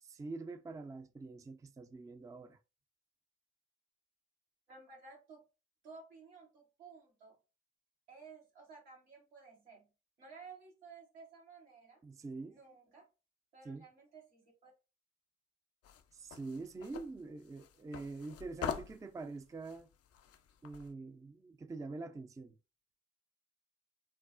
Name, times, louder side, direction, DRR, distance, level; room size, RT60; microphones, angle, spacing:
voice 1, 0.0-2.6 12.0-12.6 13.6-13.9 16.1-19.9 20.6-22.6, right 3 dB, 10° right, 0.3 m, -45 dB
voice 2, 4.7-5.4 5.8-7.4 8.1-9.9 10.2-12.0 12.5-13.0 13.5-14.7, right 4 dB, 90° right, 1.0 m, -55 dB
sound 1, 15.8-20.9, left 8 dB, 50° left, 0.4 m, -45 dB
3.4 x 2.0 x 2.4 m
hypercardioid pair, 40°, 30 cm